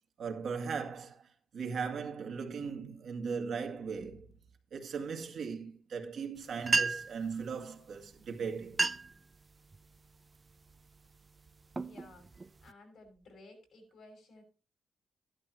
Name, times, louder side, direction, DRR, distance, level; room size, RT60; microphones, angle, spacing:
voice 1, 0.2-4.3 4.7-8.9, right 5 dB, 65° right, 2.1 m, -38 dB
sound 1, 6.4-6.5 6.6-7.2 8.1-8.3 8.6-9.2 9.7-10.1 10.7-10.9 11.5-12.7, right 3 dB, 30° right, 0.5 m, -32 dB
voice 2, 11.7-14.4, left 2 dB, 70° left, 5.7 m, -56 dB
13.0 x 11.5 x 3.0 m
cardioid pair, 75°, 0 cm